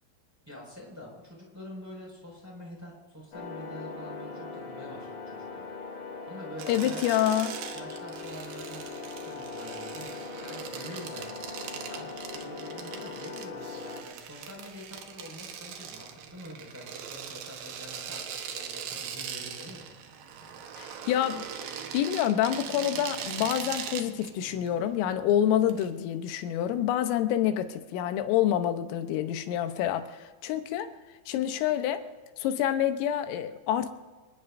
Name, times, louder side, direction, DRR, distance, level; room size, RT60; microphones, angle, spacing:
voice 1, 0.5-5.7 6.3-7.1 7.7-8.9 9.2-11.5 11.8-19.9, equal, 5° right, -2 dB, 4.9 m, -46 dB
sound 1, 3.3-14.0, left 4 dB, 35° left, 2.9 m, -40 dB
sound 2, 6.6-25.9, right 8 dB, 70° right, 2.2 m, -41 dB
voice 2, 6.7-7.5 20.8-21.5 21.9-30.9 31.3-32.1 32.4-33.9, left 11 dB, 90° left, 8 dB, 3.6 m, -27 dB
27.0 x 19.5 x 2.6 m, 1.3 s
omnidirectional pair, 5.7 m